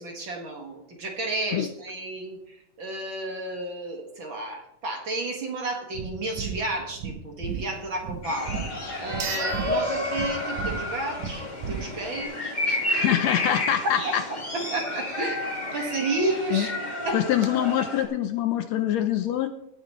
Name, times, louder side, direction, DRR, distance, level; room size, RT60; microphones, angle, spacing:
voice 1, 0.0-8.5 9.0-12.8 14.0-14.1 14.5-15.4 15.7-16.7 17.0-17.2, right 2 dB, 45° right, 1 dB, 2.2 m, -32 dB
sound 1, 5.9-12.2, right 6 dB, 80° right, 2.8 m, -35 dB
sound 2, 8.2-18.0, left 1 dB, 20° left, 1.6 m, -31 dB
sound 3, 8.4-8.5 9.2-11.0 11.3-11.4 16.1-16.2 16.4-16.5 17.0-17.5, right 9 dB, 65° right, 1.1 m, -38 dB
voice 2, 12.9-14.2 16.5-16.7 17.1-19.5, left 11 dB, 75° left, 9 dB, 1.7 m, -24 dB
18.0 x 9.6 x 3.1 m, 0.78 s
omnidirectional pair, 3.4 m